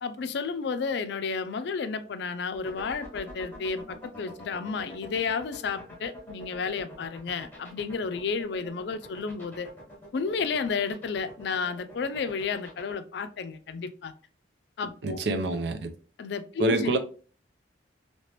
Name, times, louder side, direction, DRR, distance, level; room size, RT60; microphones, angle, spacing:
voice 1, 0.0-9.7 10.1-14.1 14.8-15.2 16.2-16.9, left 5 dB, 65° left, 0.4 m, -32 dB
sound 1, 2.5-12.9, left 1 dB, 10° left, 1.5 m, -46 dB
voice 2, 15.0-15.9 16.6-17.0, right 2 dB, 65° right, 0.5 m, -26 dB
3.3 x 2.9 x 2.8 m
head